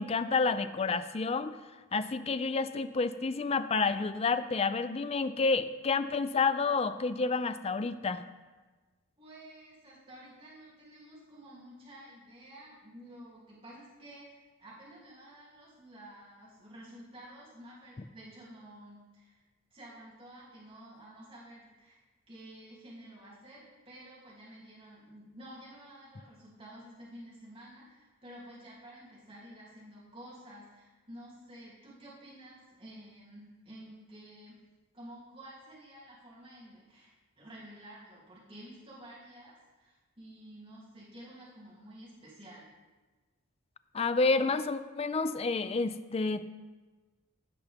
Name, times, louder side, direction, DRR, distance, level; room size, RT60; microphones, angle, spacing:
voice 1, 0.0-1.6 1.9-8.2 43.9-46.5, left 4 dB, 30° left, 12 dB, 0.4 m, -29 dB
voice 2, 9.2-19.4 19.7-22.0 22.3-34.6 34.9-37.1 37.4-42.7, right 1 dB, 25° right, -8 dB, 2.8 m, -51 dB
16.0 x 5.9 x 3.5 m, 1.3 s
head